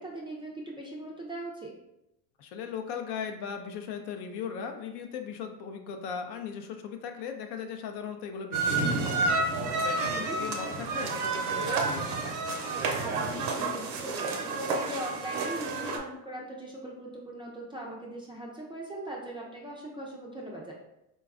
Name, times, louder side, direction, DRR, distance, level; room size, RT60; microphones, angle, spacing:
voice 1, 0.0-1.7 10.1-10.4 12.9-20.7, right 1 dB, 10° right, -3 dB, 0.4 m, -40 dB
voice 2, 2.4-12.1, left 6 dB, 60° left, 5 dB, 0.5 m, -38 dB
sound 1, 8.5-16.0, right 3 dB, 75° right, 0.7 m, -30 dB
3.9 x 2.3 x 2.4 m, 0.87 s
supercardioid pair, 90°, 46 cm